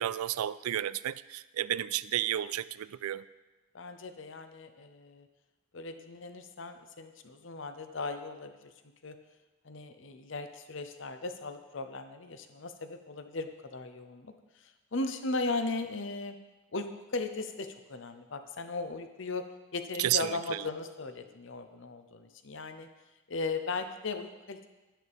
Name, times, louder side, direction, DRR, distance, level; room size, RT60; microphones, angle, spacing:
voice 1, 0.0-3.2 20.0-20.6, right 12 dB, 80° right, 18 dB, 0.3 m, -32 dB
voice 2, 3.7-5.3 5.7-8.7 9.0-9.2 9.6-16.4 16.7-19.5 19.7-22.9 23.3-24.7, left 3 dB, 55° left, 8 dB, 0.7 m, -37 dB
11.0 x 10.0 x 3.5 m, 1.1 s
head